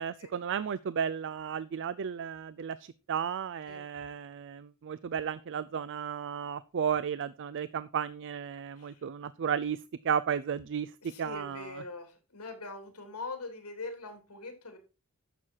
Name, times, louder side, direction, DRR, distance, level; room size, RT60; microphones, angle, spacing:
voice 1, 0.0-9.8 10.0-10.9 11.2-11.7, right 7 dB, 55° right, 16 dB, 0.4 m, -33 dB
voice 2, 11.0-14.8, left 3 dB, 85° left, 5 dB, 3.3 m, -42 dB
11.0 x 7.4 x 4.6 m, 0.32 s
head